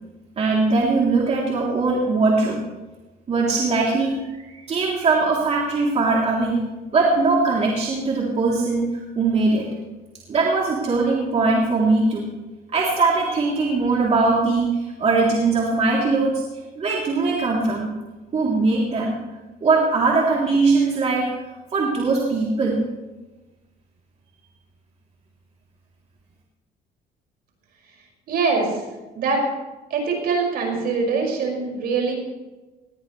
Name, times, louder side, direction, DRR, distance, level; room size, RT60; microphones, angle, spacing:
voice 1, 0.4-2.6 3.3-6.6 6.9-8.8 9.2-9.7 10.3-12.3 12.7-16.4 16.8-17.9 18.3-19.2 19.6-21.3 21.7-22.9, right 3 dB, 40° right, -3 dB, 3.2 m, -20 dB
voice 2, 28.3-28.7 29.2-29.4 29.9-32.1, right 4 dB, 65° right, 1 dB, 5.8 m, -23 dB
20.0 x 17.0 x 3.3 m, 1.1 s
cardioid pair, 110°, 17 cm